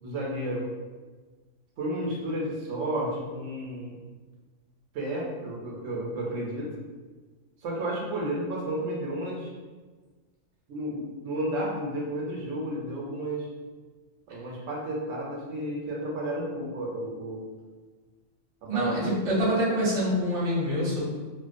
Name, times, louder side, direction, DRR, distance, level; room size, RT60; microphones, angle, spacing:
voice 1, 0.0-0.7 1.8-4.0 4.9-6.7 7.6-9.5 10.7-13.5 14.3-17.4 18.7-19.1, right 1 dB, 75° right, -3 dB, 0.9 m, -32 dB
voice 2, 18.7-21.0, equal, 35° right, -6 dB, 0.6 m, -25 dB
2.4 x 2.2 x 2.4 m, 1.3 s
omnidirectional pair, 1.3 m